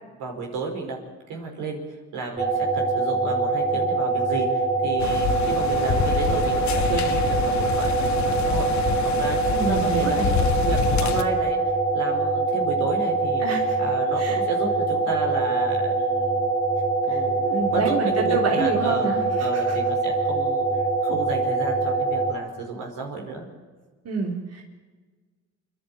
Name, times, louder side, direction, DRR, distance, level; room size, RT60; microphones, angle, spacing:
voice 1, 0.2-1.0 1.3-1.8 2.1-8.7 9.1-11.6 11.9-13.4 13.8-16.6 17.1-17.4 17.7-23.5, right 4 dB, 85° right, 1 dB, 5.3 m, -32 dB
sound 1, 2.4-22.3, right 3 dB, 20° right, 3.6 m, -24 dB
sound 2, 5.0-11.2, left 7 dB, 65° left, 1.6 m, -27 dB
voice 2, 9.5-10.3 13.4-13.7 14.2-14.4 17.1-19.8 24.0-24.6, right 4 dB, 55° right, 0 dB, 3.5 m, -28 dB
29.0 x 11.0 x 9.2 m, 1.4 s
cardioid pair, 90°, 30 cm